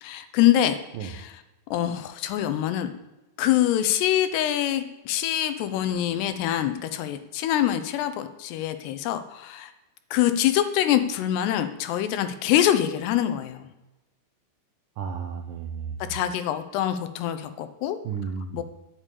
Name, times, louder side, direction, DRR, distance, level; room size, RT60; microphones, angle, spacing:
voice 1, 0.0-1.3 1.7-2.9 3.4-9.7 10.1-13.7 16.1-18.0 18.5-18.6, left 12 dB, 80° left, 10 dB, 2.8 m, -25 dB
voice 2, 15.0-16.2 18.0-18.6, right 6 dB, 80° right, 3 dB, 2.0 m, -33 dB
8.9 x 6.9 x 8.2 m, 1.0 s
omnidirectional pair, 4.9 m